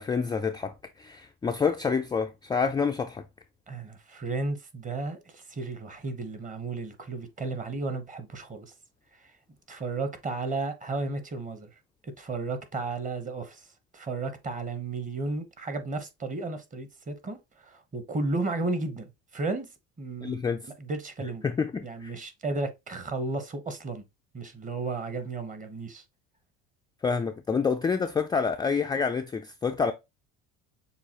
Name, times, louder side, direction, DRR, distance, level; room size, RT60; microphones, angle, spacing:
voice 1, 0.0-3.2 20.2-20.7 21.4-22.2 27.0-29.9, left 5 dB, 15° left, 0.3 m, -28 dB
voice 2, 3.7-8.7 9.7-11.7 12.0-13.7 13.9-19.7 20.0-20.4 20.8-21.4 21.8-24.0 24.3-26.0, right 3 dB, 25° right, 1.0 m, -33 dB
6.9 x 2.4 x 2.9 m
supercardioid pair, 110°, 31 cm